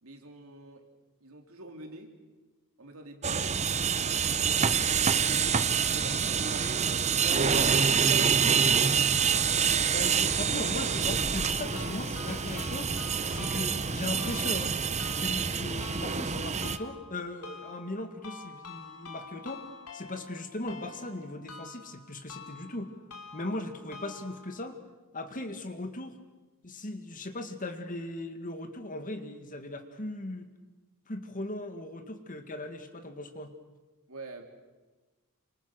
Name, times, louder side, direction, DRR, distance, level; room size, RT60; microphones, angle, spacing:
voice 1, 0.0-0.9 1.2-2.2 2.8-8.0 8.4-9.5 34.1-34.5, right 2 dB, 65° right, 4 dB, 3.5 m, -48 dB
sound 1, 3.2-16.8, right 6 dB, 30° right, 0.9 m, -27 dB
voice 2, 9.9-12.9 13.3-14.7 15.2-19.7 19.9-22.9 23.3-24.8 25.1-26.1 26.6-30.5 31.1-33.5, left 2 dB, 35° left, 8 dB, 2.0 m, -38 dB
sound 2, 11.7-24.7, left 4 dB, 85° left, 3.2 m, -47 dB
27.5 x 25.5 x 6.4 m, 1.2 s
head